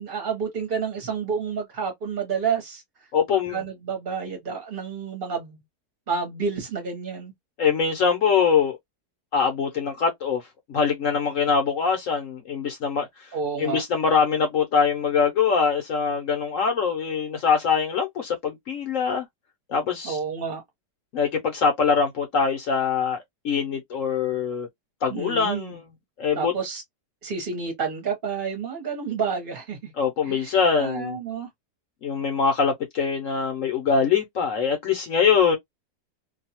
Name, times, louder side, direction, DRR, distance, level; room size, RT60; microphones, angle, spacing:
voice 1, 0.0-2.8 3.3-5.6 6.1-7.3 13.3-13.8 20.0-20.6 25.1-25.8 26.3-26.8 27.2-29.9 30.2-31.5, right 6 dB, 40° right, 0.9 m, -29 dB
voice 2, 3.1-3.6 7.6-8.8 9.3-10.4 10.7-13.3 13.6-19.3 19.7-20.2 21.1-24.7 25.0-25.8 26.2-26.5 30.0-31.2 32.0-35.6, left 6 dB, 65° left, 1.0 m, -23 dB
2.6 x 2.3 x 2.8 m
omnidirectional pair, 1.7 m